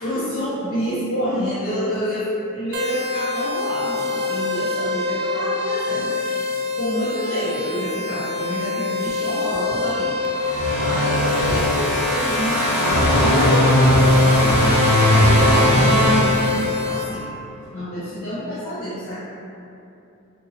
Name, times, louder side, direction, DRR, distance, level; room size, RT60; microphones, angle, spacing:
voice 1, 0.0-6.2 6.7-10.2 10.6-17.3 17.7-19.2, equal, 70° left, -13 dB, 0.8 m, -28 dB
sound 1, 2.7-17.0, left 3 dB, 50° right, 0.3 m, -26 dB
sound 2, 10.4-17.0, left 1 dB, 10° right, 0.9 m, -18 dB
2.7 x 2.5 x 2.7 m, 2.7 s
head